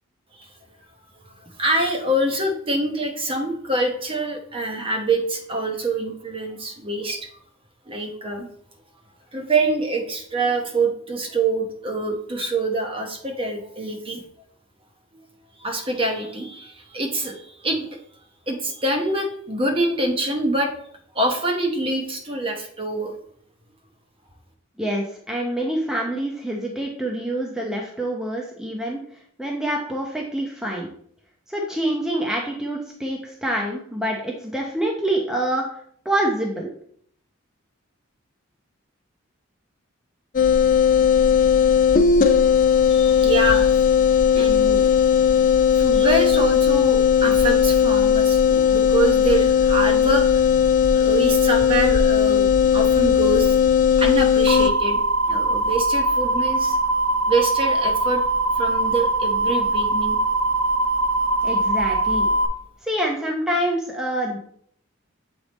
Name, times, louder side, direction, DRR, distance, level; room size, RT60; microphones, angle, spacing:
voice 1, 1.6-7.3 7.9-8.5 9.3-14.2 15.6-18.0 18.5-20.7 21.1-23.1 42.5-43.9 44.3-45.2 45.8-50.4 50.9-52.5 52.7-53.6 54.0-55.0 55.3-56.8 57.3-58.2 58.6-60.2, right 2 dB, 25° right, 3 dB, 1.0 m, -25 dB
voice 2, 24.8-29.0 29.4-30.9 31.5-36.7 61.4-62.3 62.8-64.4, right 1 dB, 5° right, -2 dB, 0.7 m, -26 dB
sound 1, 40.3-54.7, left 7 dB, 40° left, 0.4 m, -17 dB
sound 2, 54.5-62.5, right 2 dB, 85° right, 0.9 m, -21 dB
7.7 x 3.4 x 4.1 m, 0.63 s
head